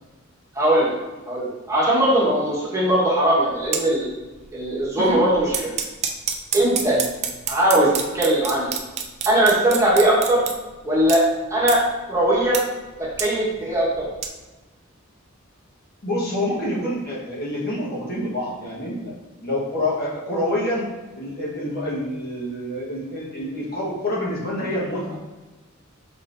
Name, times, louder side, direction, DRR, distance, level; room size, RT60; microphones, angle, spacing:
voice 1, 0.5-0.9 1.3-4.1 4.5-5.7 6.5-7.0 7.5-8.7 9.2-10.4 10.8-11.2 11.5-11.8 12.1-12.6 13.2-14.0, right 1 dB, 15° right, -7 dB, 1.2 m, -19 dB
sound 1, 3.5-3.8 4.2-4.5 4.8-10.5 11.0-11.2 11.6-11.7 12.3-12.6 12.8-14.3, right 6 dB, 35° right, 0.4 m, -27 dB
voice 2, 16.0-19.1 19.4-20.9 21.2-25.2, left 1 dB, 50° left, -5 dB, 1.2 m, -27 dB
5.2 x 4.1 x 2.5 m, 1.2 s
head